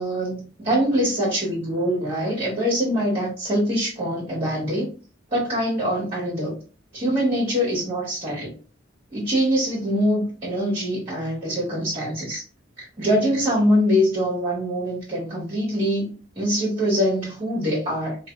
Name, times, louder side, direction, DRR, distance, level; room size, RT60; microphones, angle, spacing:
voice 1, 0.0-4.8 5.3-6.5 6.9-8.5 9.1-12.4 13.0-16.1 16.3-18.2, equal, 30° right, -7 dB, 1.7 m, -23 dB
4.7 x 2.9 x 2.4 m, 0.36 s
head